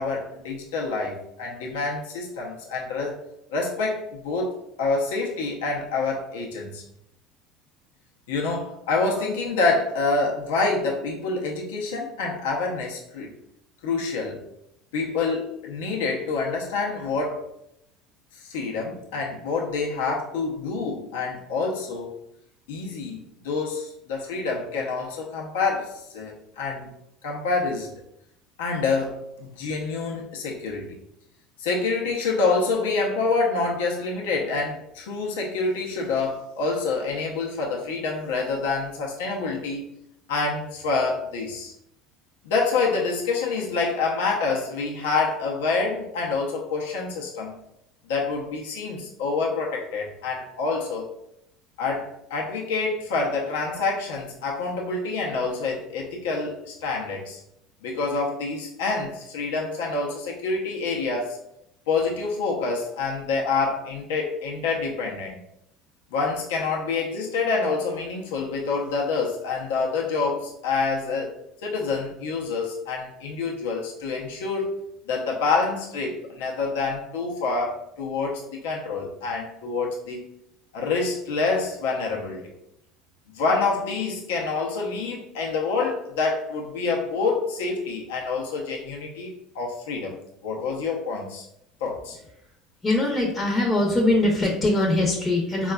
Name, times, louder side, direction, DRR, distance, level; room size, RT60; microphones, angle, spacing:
voice 1, 0.0-3.2 3.5-6.8 8.3-13.3 13.8-14.4 14.9-17.5 18.4-22.1 22.7-26.9 27.2-27.9 28.6-31.0 31.6-39.9 40.3-41.7 42.4-47.5 48.1-51.1 51.8-57.4 57.8-61.4 61.9-65.4 66.1-71.3 71.6-74.8 75.1-80.3 80.7-82.5 83.3-90.2 90.4-91.4 91.8-92.2, left 4 dB, 85° left, -1 dB, 0.6 m, -27 dB
voice 2, 92.8-95.7, left 2 dB, 25° left, -2 dB, 0.6 m, -22 dB
3.9 x 2.3 x 2.3 m, 0.78 s
supercardioid pair, 95°, 0 cm